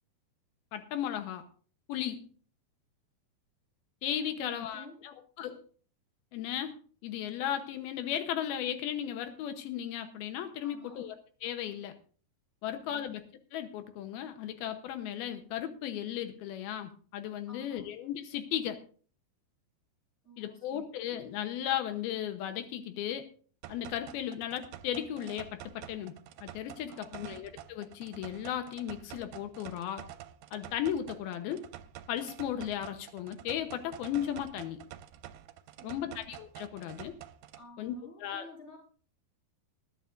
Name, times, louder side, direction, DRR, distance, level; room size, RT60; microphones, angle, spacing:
voice 1, 0.7-1.4 1.9-2.3 4.0-5.6 6.3-6.8 7.0-11.1 11.4-12.0 12.6-13.3 13.5-18.8 20.4-23.3 23.7-26.1 26.4-30.0 30.5-31.7 32.1-34.8 35.8-37.1 37.8-37.9 38.2-38.4, left 10 dB, 90° left, 8 dB, 3.0 m, -36 dB
voice 2, 4.3-5.0 10.6-11.1 12.6-13.1 17.5-17.9 20.2-20.6 26.9-27.4 35.8-36.2 37.5-38.8, equal, 20° left, -2 dB, 5.1 m, -52 dB
sound 1, 23.6-37.6, right 11 dB, 80° right, 2.4 m, -49 dB
20.5 x 11.5 x 2.6 m, 0.42 s
omnidirectional pair, 4.2 m